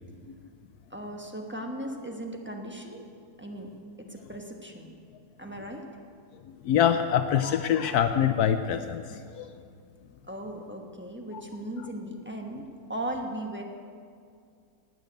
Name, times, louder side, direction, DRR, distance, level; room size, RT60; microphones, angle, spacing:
voice 1, 0.9-3.0 3.4-3.7 4.0-4.9 5.4-5.8 10.3-13.6, right 1 dB, 10° right, 1 dB, 1.0 m, -37 dB
voice 2, 6.5-9.5, left 9 dB, 75° left, 9 dB, 1.1 m, -25 dB
12.0 x 8.1 x 9.1 m, 2.3 s
omnidirectional pair, 1.7 m